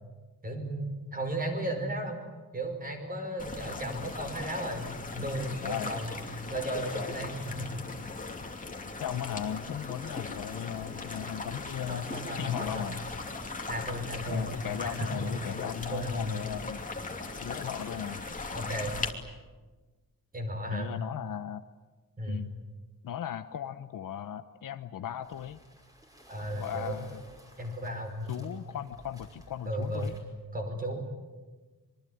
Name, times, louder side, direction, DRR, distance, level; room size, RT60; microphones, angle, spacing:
voice 1, 0.4-2.2 2.5-6.2 6.5-7.8 11.9-12.9 13.7-14.5 14.8-15.1 15.9-16.2 18.5-18.9 20.3-20.9 22.2-22.4 26.3-27.0 27.6-28.5 29.7-30.1 30.5-31.0, equal, 25° right, 4 dB, 5.3 m, -34 dB
sound 1, 3.4-19.1, left 3 dB, 25° left, 2.8 m, -39 dB
voice 2, 5.6-5.9 9.0-13.0 14.3-16.8 17.4-18.2 20.7-21.6 22.3-22.5 23.0-25.6 26.4-27.2 28.3-30.1, left 9 dB, 75° left, 9 dB, 1.0 m, -37 dB
Sea Waves Rocky Beach Walk, 25.2-30.2, equal, 10° right, 5.6 m, -55 dB
25.5 x 23.5 x 9.4 m, 1.3 s
wide cardioid pair, 160°, 33 cm